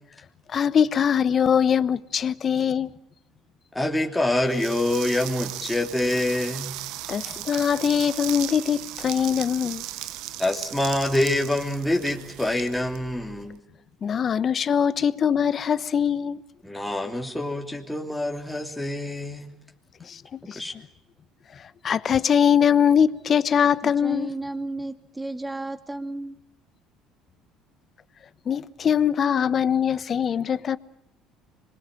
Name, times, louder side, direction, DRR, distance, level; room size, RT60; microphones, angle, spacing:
voice 1, 0.5-2.9 7.1-9.8 14.0-16.4 20.0-20.6 21.5-24.3 28.5-30.8, left 8 dB, 45° left, 1.1 m, -22 dB
voice 2, 3.7-6.7 7.4-7.5 10.4-13.6 16.6-19.5 20.5-20.7, left 1 dB, 5° left, 3.1 m, -26 dB
sound 1, 4.5-13.5, right 14 dB, 75° right, 1.1 m, -37 dB
voice 3, 23.8-26.4, right 2 dB, 10° right, 2.4 m, -33 dB
26.5 x 22.0 x 9.0 m
supercardioid pair, 80°, 0 cm